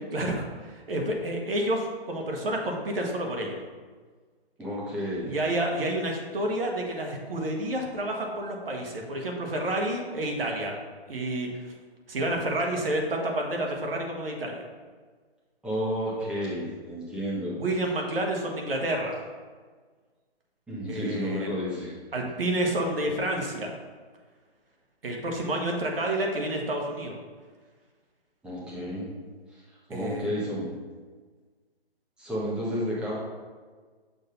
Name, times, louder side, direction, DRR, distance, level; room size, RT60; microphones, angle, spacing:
voice 1, 0.1-3.6 5.2-10.7 11.1-11.6 12.1-14.6 17.6-19.2 20.9-21.5 22.1-23.8 25.0-27.2 29.9-30.3, right 1 dB, 65° right, 1 dB, 1.4 m, -29 dB
voice 2, 4.6-5.3 15.6-17.5 20.7-21.9 22.2-22.3 28.4-29.1 29.5-29.6 29.9-30.7 32.2-33.2, equal, 5° right, -7 dB, 0.8 m, -31 dB
6.7 x 2.6 x 5.4 m, 1.5 s
figure-of-eight pair, 145°, 31 cm